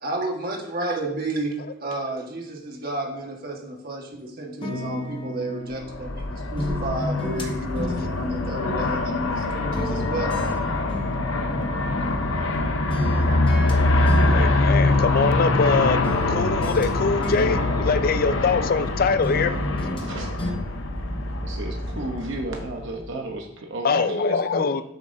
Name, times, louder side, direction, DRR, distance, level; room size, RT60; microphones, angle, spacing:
voice 1, 0.0-10.3, right 1 dB, 45° right, 0 dB, 1.5 m, -31 dB
sound 1, 4.6-6.2 6.6-9.4 9.7-12.6 12.9-13.8 14.1-15.7 16.0-18.9 19.2-20.1 20.4-20.5, left 1 dB, 25° left, 1.0 m, -33 dB
Aircraft, 5.8-23.1, left 2 dB, 65° left, 0.8 m, -24 dB
voice 2, 14.3-16.0 16.3-19.5 23.8-24.8, left 4 dB, 45° left, 11 dB, 0.4 m, -23 dB
voice 3, 21.4-24.7, right 2 dB, 60° right, 1 dB, 0.9 m, -33 dB
9.3 x 7.6 x 2.7 m, 0.81 s
head